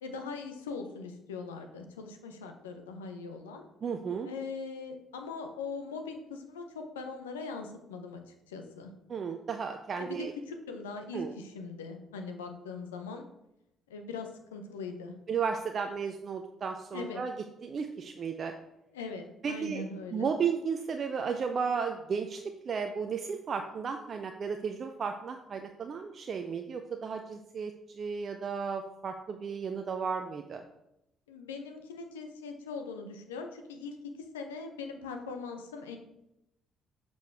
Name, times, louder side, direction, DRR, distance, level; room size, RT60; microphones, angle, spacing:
voice 1, 0.0-3.7 4.2-8.9 10.0-13.3 13.9-15.1 16.9-17.2 18.9-20.3 31.3-36.0, left 4 dB, 80° left, 5 dB, 0.7 m, -41 dB
voice 2, 3.8-4.3 9.1-10.3 11.1-11.3 15.3-17.3 17.6-18.5 19.4-19.8 20.1-30.6, right 6 dB, 45° right, 5 dB, 0.5 m, -34 dB
6.6 x 5.2 x 3.5 m, 0.85 s
figure-of-eight pair, 45°, 0 cm